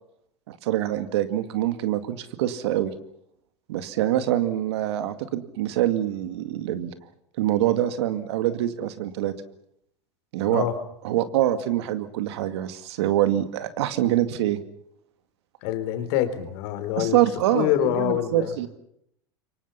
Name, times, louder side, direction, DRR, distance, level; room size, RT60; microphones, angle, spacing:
voice 1, 0.5-2.9 3.7-6.9 7.4-9.3 10.3-10.6 11.0-14.6 17.0-18.7, right 13 dB, 75° right, 11 dB, 2.2 m, -25 dB
voice 2, 15.6-17.2 17.5-18.5, left 11 dB, 65° left, 9 dB, 3.8 m, -25 dB
28.0 x 24.0 x 5.8 m, 0.73 s
hypercardioid pair, 90°, 14 cm